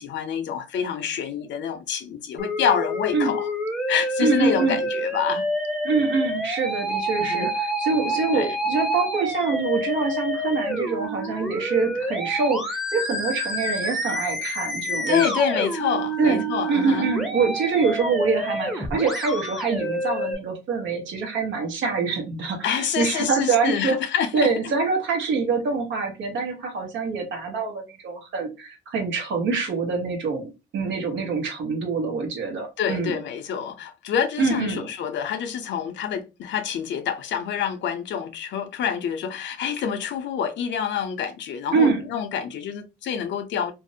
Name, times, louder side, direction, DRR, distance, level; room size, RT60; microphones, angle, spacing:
voice 1, 0.0-3.5 3.9-5.5 7.2-7.5 8.3-8.6 15.1-17.1 22.6-24.5 32.8-43.7, left 8 dB, 70° left, 0.5 m, -27 dB
Musical instrument, 2.4-20.4, equal, ahead, 0.7 m, -28 dB
voice 2, 4.2-4.8 5.8-15.2 16.2-24.0 24.3-33.2 34.4-34.8 41.7-42.0, right 4 dB, 75° right, 0.9 m, -25 dB
2.5 x 2.0 x 2.6 m
cardioid pair, 90°, 20 cm